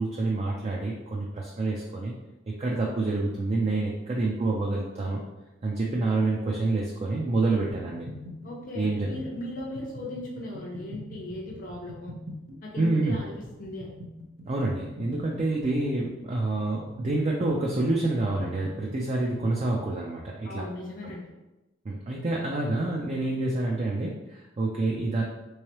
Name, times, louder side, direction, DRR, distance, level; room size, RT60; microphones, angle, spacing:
voice 1, 0.0-2.1 2.5-5.2 5.6-8.1 8.7-9.2 12.8-13.2 14.5-20.7 21.0-21.1 21.9-25.2, right 2 dB, 30° right, -2 dB, 0.4 m, -27 dB
sound 1, 7.7-20.0, left 1 dB, 80° right, 0.7 m, -44 dB
voice 2, 8.4-12.1 12.6-13.3 13.6-14.0 20.4-21.3, left 1 dB, 45° left, -4 dB, 0.6 m, -37 dB
3.5 x 3.1 x 2.9 m, 1.0 s
head